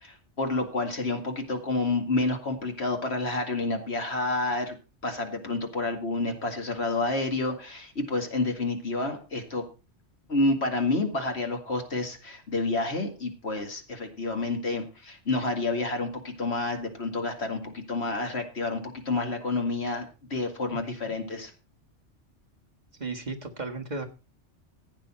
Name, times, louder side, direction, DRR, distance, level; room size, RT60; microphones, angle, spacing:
voice 1, 0.0-4.8 5.0-9.7 10.3-21.5, left 2 dB, 60° left, 4 dB, 2.4 m, -29 dB
voice 2, 23.0-24.1, right 3 dB, 35° right, 3 dB, 1.6 m, -35 dB
15.5 x 8.9 x 4.3 m, 0.32 s
omnidirectional pair, 1.2 m